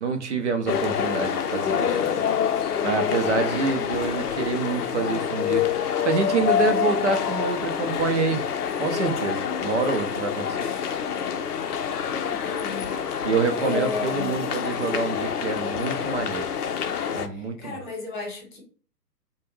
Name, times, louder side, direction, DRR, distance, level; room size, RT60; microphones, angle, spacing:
voice 1, 0.0-2.2 2.8-8.4 8.8-10.6 13.2-16.4 17.1-17.8, right 4 dB, 45° right, 0.5 m, -27 dB
sound 1, 0.7-17.3, left 8 dB, 65° left, 0.6 m, -27 dB
voice 2, 12.2-13.3 13.6-14.4 17.3-18.6, left 4 dB, 30° left, 1.0 m, -34 dB
2.3 x 2.2 x 3.1 m
figure-of-eight pair, 135°, 49 cm